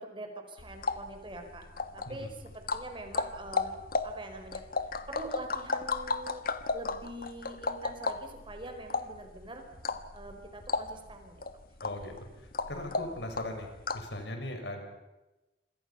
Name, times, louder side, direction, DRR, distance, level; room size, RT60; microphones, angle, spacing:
voice 1, 0.0-1.7 1.9-3.8 4.0-4.6 5.1-6.4 6.7-9.6 10.1-11.4, right 1 dB, 30° right, 5 dB, 4.6 m, -44 dB
sound 1, 0.6-14.2, left 3 dB, 55° left, 1.3 m, -35 dB
voice 2, 11.8-12.1 12.7-13.7 13.9-14.8, left 1 dB, 70° left, 4 dB, 5.9 m, -38 dB
27.0 x 26.0 x 5.7 m, 1.0 s
head